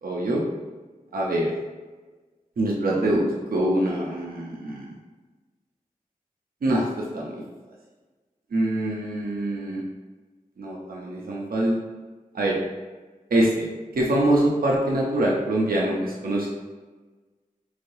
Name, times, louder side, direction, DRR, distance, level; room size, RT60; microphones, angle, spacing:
voice 1, 0.0-0.4 1.1-1.5 2.6-4.9 6.6-7.4 8.5-9.8 10.6-11.7 12.3-12.6 13.3-13.5 13.9-16.5, right 1 dB, 85° right, -3 dB, 0.5 m, -24 dB
3.7 x 3.2 x 2.6 m, 1.3 s
wide cardioid pair, 60°, 15 cm